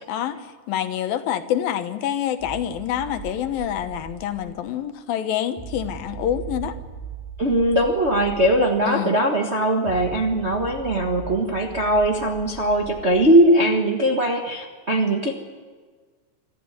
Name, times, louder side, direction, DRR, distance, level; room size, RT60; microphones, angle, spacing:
voice 1, 0.1-0.4 0.7-6.7 8.9-9.2, left 10 dB, 90° left, 9 dB, 3.0 m, -26 dB
sound 1, 2.4-4.7 5.6-8.8 9.8-13.4, right 7 dB, 5° right, 6.1 m, -38 dB
voice 2, 7.4-15.3, right 1 dB, 45° right, 1 dB, 0.8 m, -20 dB
25.5 x 13.5 x 9.8 m, 1.5 s
omnidirectional pair, 4.0 m